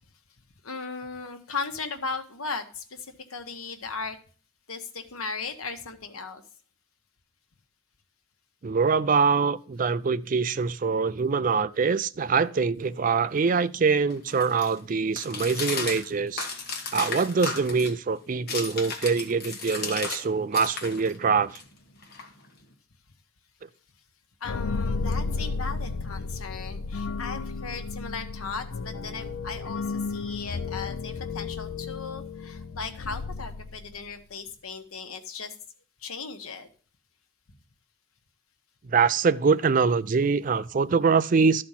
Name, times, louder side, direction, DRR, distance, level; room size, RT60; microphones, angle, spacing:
voice 1, 0.6-4.2 4.7-6.4 24.4-35.5 36.0-36.7, left 4 dB, 90° left, 1.2 m, -37 dB
voice 2, 8.6-16.5 16.9-21.6 38.9-41.6, right 5 dB, 40° right, 0.4 m, -24 dB
sound 1, 12.9-20.2 20.5-22.7, left 4 dB, 45° left, 1.5 m, -36 dB
sound 2, 24.4-34.1, left 4 dB, 65° left, 0.5 m, -33 dB
12.5 x 4.3 x 5.7 m
head